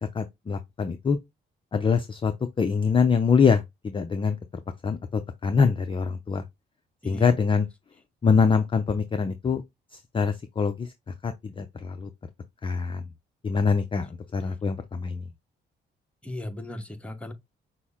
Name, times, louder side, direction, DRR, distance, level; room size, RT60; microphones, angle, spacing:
voice 1, 0.1-1.2 1.7-2.3 2.6-4.4 4.8-6.4 7.0-7.7 8.2-9.6 9.9-12.1 12.6-13.0 13.4-15.3, left 5 dB, 25° left, 0.5 m, -24 dB
voice 2, 16.2-17.3, left 1 dB, 5° left, 1.0 m, -37 dB
6.1 x 2.0 x 3.5 m
cardioid pair, 90°, 20 cm